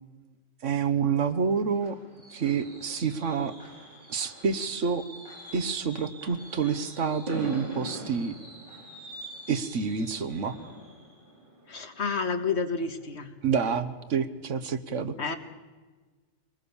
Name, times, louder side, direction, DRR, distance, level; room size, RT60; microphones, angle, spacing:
voice 1, 0.6-2.0 2.3-3.5 4.1-5.1 5.5-8.3 9.5-10.6 13.4-15.4, right 6 dB, 80° right, 11 dB, 1.4 m, -28 dB
Fireworks, 1.4-12.9 13.2-13.5 13.8-13.9, right 1 dB, 45° right, 4.5 m, -43 dB
voice 2, 11.7-13.3 15.2-15.4, left 4 dB, 65° left, 7 dB, 1.8 m, -30 dB
23.5 x 20.0 x 7.1 m, 1.3 s
omnidirectional pair, 1.3 m